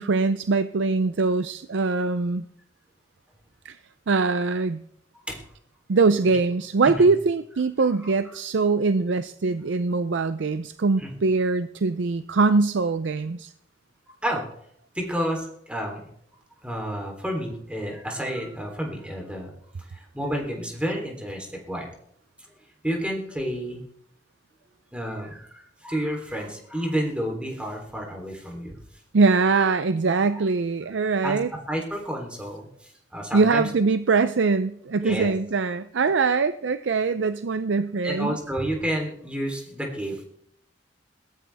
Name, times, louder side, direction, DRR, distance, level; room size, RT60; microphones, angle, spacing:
voice 1, 0.0-2.4 3.6-3.8 4.1-4.8 5.9-13.5 29.1-31.5 33.3-38.4, right 4 dB, 85° right, 11 dB, 0.5 m, -22 dB
voice 2, 7.8-8.1 11.0-11.1 14.2-14.4 14.9-16.1 16.6-19.5 19.8-21.9 22.8-23.8 24.9-28.8 31.2-31.4 31.7-33.7 35.0-35.3 38.0-40.2, equal, 5° right, 0 dB, 3.5 m, -30 dB
21.0 x 16.0 x 3.5 m, 0.71 s
head